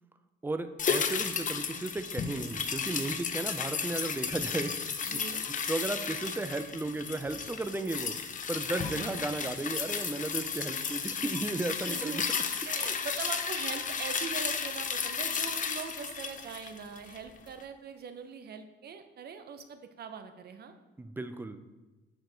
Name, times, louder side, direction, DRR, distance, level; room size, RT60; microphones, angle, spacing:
voice 1, 0.4-5.2 5.7-8.2 8.5-12.3 21.0-21.6, right 2 dB, 10° right, 10 dB, 0.4 m, -35 dB
sound 1, 0.8-17.3 17.6-17.7, left 6 dB, 40° left, 0.6 m, -34 dB
voice 2, 5.0-5.4 8.8-9.2 11.8-12.4 12.6-20.7, right 6 dB, 55° right, 8 dB, 0.6 m, -42 dB
6.5 x 4.6 x 3.9 m, 1.2 s
cardioid pair, 90°, 20 cm